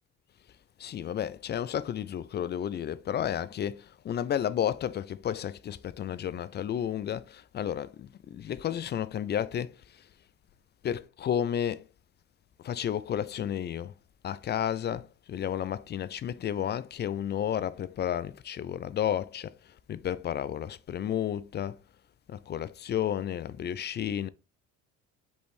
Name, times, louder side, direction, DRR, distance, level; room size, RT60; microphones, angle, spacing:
voice 1, 0.8-10.1 10.8-11.9 12.6-13.9 14.2-21.8 22.3-24.3, left 9 dB, 30° left, 0.4 m, -32 dB
5.4 x 3.1 x 3.3 m
supercardioid pair, 75°, 34 cm